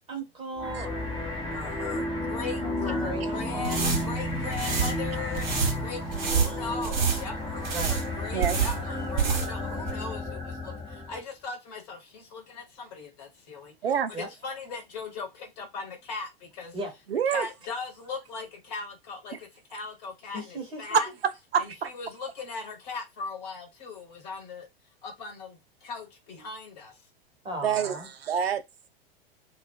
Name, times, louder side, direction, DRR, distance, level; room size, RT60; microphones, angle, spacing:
voice 1, 0.1-1.6 2.6-3.8 6.1-6.8 7.7-8.0 14.1-14.3 16.7-16.9 20.3-20.8 27.4-28.1, right 2 dB, 15° right, 1.1 m, -38 dB
sound 1, 0.6-11.2, left 2 dB, 15° left, 0.9 m, -32 dB
voice 2, 1.5-13.8 14.2-16.8 17.3-21.1 21.6-24.7 25.0-27.0, left 4 dB, 40° left, 1.1 m, -39 dB
sound 2, 3.5-9.6 9.9-10.0, right 7 dB, 50° right, 1.1 m, -28 dB
voice 3, 13.8-14.1 17.1-17.5 19.3-19.4 20.9-21.9 27.6-28.6, right 7 dB, 75° right, 0.5 m, -27 dB
2.4 x 2.2 x 2.3 m
figure-of-eight pair, 95°, 30 cm